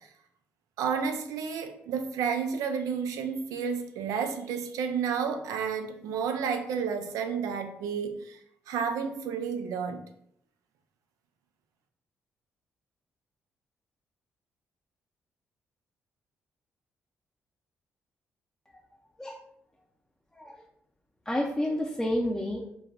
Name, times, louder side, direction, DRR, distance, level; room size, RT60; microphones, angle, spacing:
voice 1, 0.8-8.4 8.7-10.1, right 6 dB, 70° right, 6 dB, 0.3 m, -31 dB
voice 2, 20.3-20.6 21.3-22.7, left 1 dB, 10° left, -3 dB, 0.5 m, -30 dB
3.2 x 2.1 x 2.5 m, 0.71 s
hypercardioid pair, 45°, 6 cm